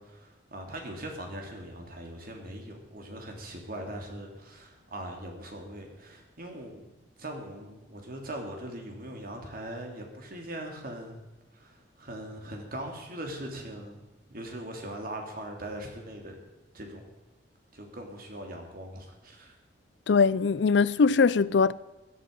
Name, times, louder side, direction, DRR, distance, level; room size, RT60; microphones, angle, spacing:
voice 1, 0.0-6.9 7.2-11.3 11.5-14.0 14.3-16.4 16.7-17.0 17.7-19.5, right 1 dB, 55° right, 3.1 m, -40 dB
voice 2, 20.1-21.7, left 5 dB, 75° left, 0.5 m, -21 dB
16.0 x 12.5 x 5.4 m
head